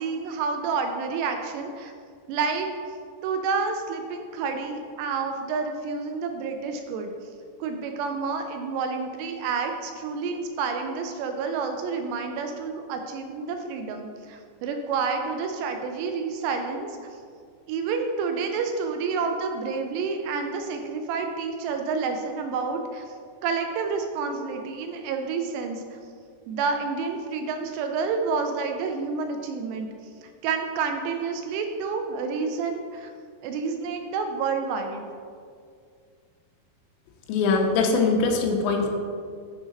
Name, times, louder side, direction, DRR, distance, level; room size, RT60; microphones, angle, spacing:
voice 1, 0.0-1.9 2.3-2.7 3.2-7.1 7.6-16.9 17.7-23.1 23.4-26.0 26.5-29.9 30.2-33.1 33.4-35.0, right 5 dB, 80° right, 5 dB, 2.6 m, -29 dB
voice 2, 37.3-38.9, left 4 dB, 85° left, 3 dB, 3.0 m, -22 dB
7.4 x 4.8 x 5.1 m, 2.2 s
omnidirectional pair, 5.2 m